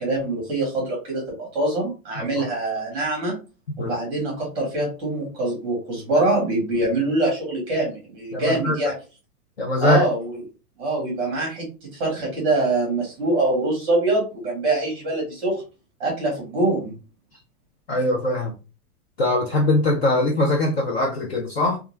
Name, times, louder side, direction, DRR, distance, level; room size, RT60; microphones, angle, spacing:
voice 1, 0.0-3.3 3.8-8.9 9.8-10.3 10.8-11.7 12.0-15.6 16.0-16.9, right 2 dB, 10° right, 0.9 m, -24 dB
voice 2, 8.3-8.8 9.6-10.0 17.9-18.5 19.2-21.8, left 1 dB, 45° left, 0.4 m, -21 dB
2.3 x 2.2 x 3.0 m
supercardioid pair, 180°, 46 cm